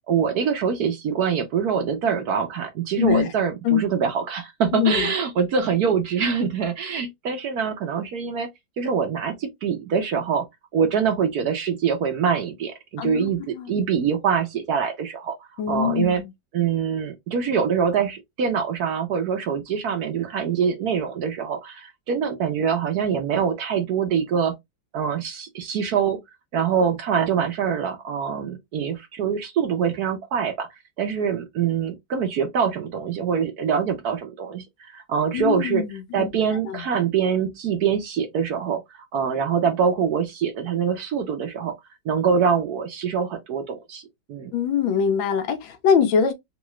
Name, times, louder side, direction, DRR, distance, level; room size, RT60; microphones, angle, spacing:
voice 1, 0.1-8.5 8.8-10.4 10.7-15.4 15.7-16.2 16.5-24.5 24.9-26.2 26.5-30.7 31.0-35.8 36.1-38.8 39.1-41.7 42.0-44.0 44.3-44.5, right 7 dB, 65° right, 1.1 m, -24 dB
voice 2, 3.0-3.3 3.6-3.8 4.7-5.1 13.0-13.7 15.6-16.3 35.3-36.3 36.7-36.8 44.5-46.3, left 7 dB, 80° left, 1.6 m, -23 dB
3.8 x 2.3 x 3.1 m
omnidirectional pair, 2.1 m